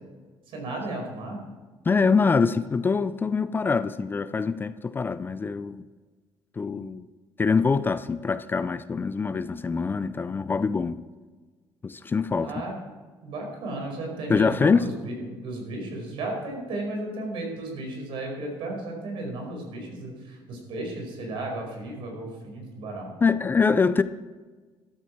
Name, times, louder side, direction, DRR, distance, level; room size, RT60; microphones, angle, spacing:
voice 1, 0.5-1.4 12.4-12.8 13.2-23.2, right 2 dB, 70° right, 1 dB, 5.0 m, -34 dB
voice 2, 1.8-5.8 6.6-7.0 7.4-11.0 11.8-12.5 14.3-14.8 23.2-24.0, left 5 dB, 20° left, 13 dB, 0.4 m, -24 dB
13.5 x 13.0 x 4.6 m, 1.3 s
cardioid pair, 135°, 9 cm